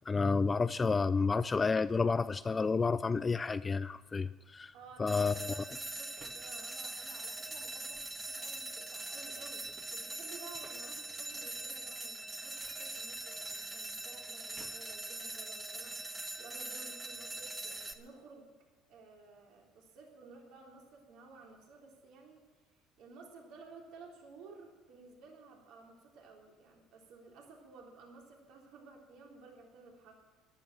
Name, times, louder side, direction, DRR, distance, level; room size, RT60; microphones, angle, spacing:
voice 1, 0.1-4.7 5.0-5.6, left 4 dB, 20° left, 13 dB, 0.4 m, -30 dB
sound 1, 3.5-3.9 6.2-6.5 7.9-8.3 9.6-10.9 12.6-13.6 14.5-15.0 15.7-15.8, right 5 dB, 40° right, 1.8 m, -59 dB
voice 2, 4.7-9.6 9.9-16.0 16.4-18.5 18.9-22.4 23.0-30.1, right 4 dB, 65° right, 0 dB, 3.7 m, -55 dB
sound 2, 5.1-17.9, right 2 dB, 15° right, 1.5 m, -42 dB
14.0 x 11.5 x 7.5 m, 1.4 s
cardioid pair, 110°, 0 cm